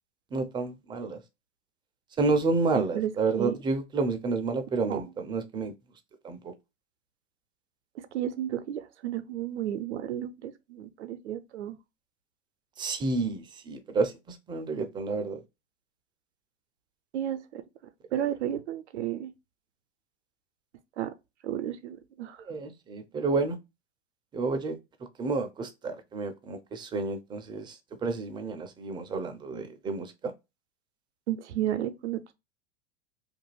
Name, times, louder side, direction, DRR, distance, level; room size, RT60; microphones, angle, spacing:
voice 1, 0.3-1.2 2.2-5.7 6.2-6.5 12.8-15.4 22.4-23.6 24.3-24.8 25.2-30.3, right 3 dB, 15° right, 0.4 m, -30 dB
voice 2, 2.7-3.1 3.4-3.6 4.8-5.0 8.1-11.8 17.1-17.6 18.1-19.3 21.0-21.1 21.4-22.4 31.3-32.3, right 11 dB, 80° right, 0.6 m, -32 dB
2.5 x 2.2 x 3.1 m
hypercardioid pair, 95°, 34 cm